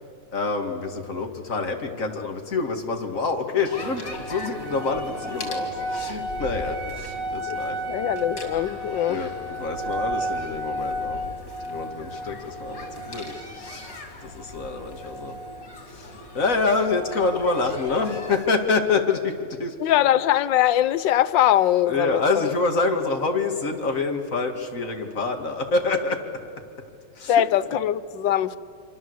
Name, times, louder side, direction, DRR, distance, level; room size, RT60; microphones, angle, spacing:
voice 1, 0.3-7.8 9.0-11.3 11.7-15.3 15.9-19.7 21.9-26.2 27.2-27.4, left 4 dB, 45° left, 2.5 m, -27 dB
sound 1, 3.7-18.5, equal, 70° left, 4.1 m, -33 dB
voice 2, 7.9-9.2 19.8-22.5 27.3-28.6, left 11 dB, 85° left, 1.5 m, -21 dB
26.5 x 24.5 x 8.0 m
omnidirectional pair, 1.9 m